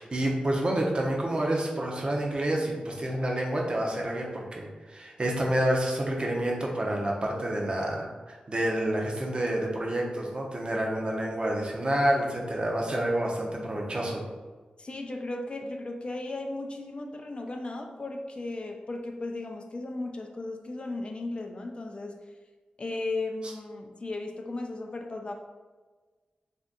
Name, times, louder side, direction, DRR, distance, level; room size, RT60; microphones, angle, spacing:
voice 1, 0.0-14.2, right 1 dB, 35° right, -1 dB, 0.6 m, -28 dB
voice 2, 13.6-14.0 14.8-22.1 22.8-25.3, left 2 dB, 40° left, 2 dB, 0.3 m, -36 dB
2.6 x 2.4 x 3.5 m, 1.4 s
wide cardioid pair, 85°, 3 cm